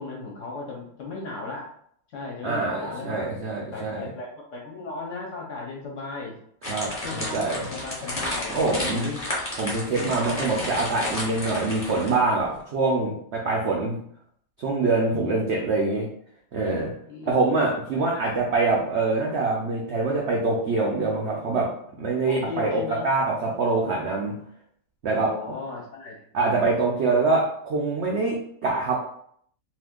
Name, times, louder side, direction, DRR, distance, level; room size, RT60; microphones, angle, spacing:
voice 1, 0.0-1.7 2.1-3.3 3.7-6.3 7.0-9.2 10.3-10.6 15.2-15.4 17.1-17.4 18.0-18.3 22.3-23.1 25.1-26.2, left 4 dB, 60° left, -2 dB, 1.0 m, -36 dB
voice 2, 2.4-4.1 6.7-7.7 8.5-9.1 9.6-14.0 14.6-16.1 16.5-16.9 17.3-21.7 22.0-24.3 25.0-25.3 26.3-28.9, right 3 dB, 70° right, -2 dB, 0.6 m, -24 dB
sound 1, 6.6-12.3, left 1 dB, 30° left, 0.8 m, -32 dB
2.7 x 2.4 x 3.5 m, 0.65 s
omnidirectional pair, 1.7 m